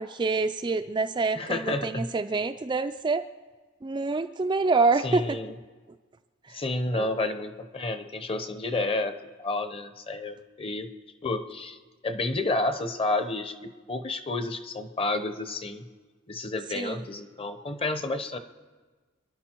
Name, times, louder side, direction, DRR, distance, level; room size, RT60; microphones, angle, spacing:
voice 1, 0.0-3.3 3.8-5.4 6.5-6.6 6.9-7.1 16.7-17.0, right 3 dB, 20° right, 8 dB, 0.4 m, -26 dB
voice 2, 1.4-2.1 5.0-5.5 6.5-9.1 9.4-10.9 11.2-11.8 12.0-15.8 16.3-18.4, left 2 dB, 30° left, 9 dB, 0.9 m, -30 dB
28.0 x 11.0 x 4.5 m, 1.4 s
head